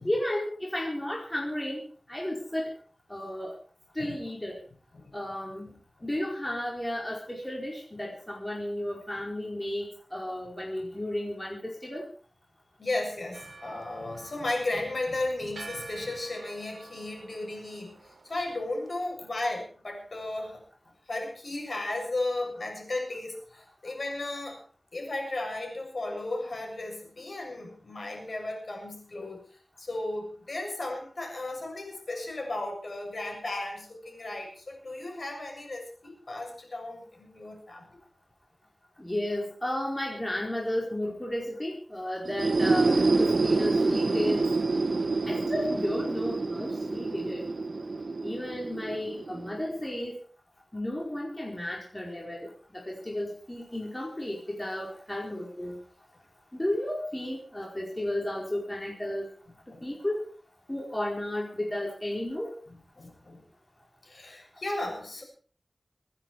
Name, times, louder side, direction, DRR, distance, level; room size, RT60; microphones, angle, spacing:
voice 1, 0.0-1.8 2.1-2.7 3.1-3.5 3.9-4.6 5.1-5.8 6.0-12.1 39.0-44.5 45.3-47.5 48.2-50.1 50.7-55.8 56.5-59.3 59.7-60.2 60.7-62.5, left 1 dB, 20° left, -2 dB, 4.6 m, -33 dB
voice 2, 12.8-20.6 21.1-24.6 24.9-29.5 29.8-38.0 45.0-45.2 59.7-59.8 62.7-63.4 64.0-65.2, left 2 dB, 70° left, 2 dB, 7.4 m, -35 dB
Church bell, 13.3-19.1, right 3 dB, 90° right, 2.2 m, -48 dB
sound 1, 42.2-49.9, right 3 dB, 70° right, 1.7 m, -27 dB
25.5 x 10.0 x 4.8 m, 0.41 s
wide cardioid pair, 65°, 0 cm